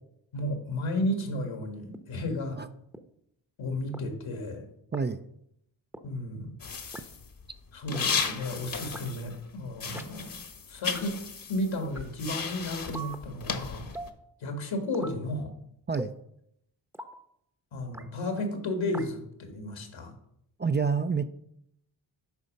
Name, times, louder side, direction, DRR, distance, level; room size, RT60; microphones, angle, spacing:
voice 1, 0.3-2.6 3.6-4.7 6.0-7.1 7.7-10.4 10.7-11.2 11.5-13.9 14.4-15.5 17.7-20.1, left 1 dB, 75° left, 5 dB, 1.9 m, -33 dB
sound 1, 1.9-2.0 2.9-3.0 3.9-4.0 4.9-5.0 5.9-6.0 6.9-7.0 7.9-8.0 8.9-9.0 9.9-10.0 10.9-11.0 11.9-12.0 12.9-13.2 13.9-14.2 14.9-15.2 15.9-16.2 16.9-17.1 17.9-18.1 18.9-19.1, right 1 dB, 5° right, 0.9 m, -40 dB
sound 2, 6.6-9.5 9.7-14.1, left 5 dB, 45° left, 1.2 m, -35 dB
voice 2, 20.6-21.3, right 5 dB, 25° right, 10 dB, 0.5 m, -27 dB
8.1 x 5.1 x 5.3 m, 0.75 s
supercardioid pair, 50°, 47 cm